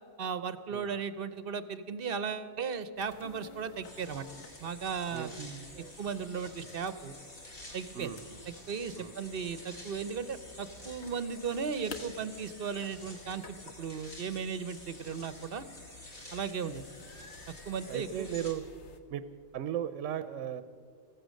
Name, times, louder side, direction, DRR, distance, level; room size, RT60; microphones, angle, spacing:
voice 1, 0.2-4.3 4.6-5.6 6.0-7.2 7.7-8.1 8.5-15.7 16.3-16.8 17.7-18.3, right 6 dB, 55° right, 13 dB, 0.8 m, -36 dB
sound 1, 3.0-19.0, left 3 dB, 65° left, 1.4 m, -53 dB
sound 2, 3.8-18.5, left 1 dB, 50° left, 2.5 m, -50 dB
voice 2, 7.9-8.4 9.0-9.1 17.9-18.6 19.1-19.2 19.5-20.6, right 10 dB, 85° right, 13 dB, 1.0 m, -36 dB
15.0 x 14.5 x 6.3 m, 2.3 s
omnidirectional pair, 1.3 m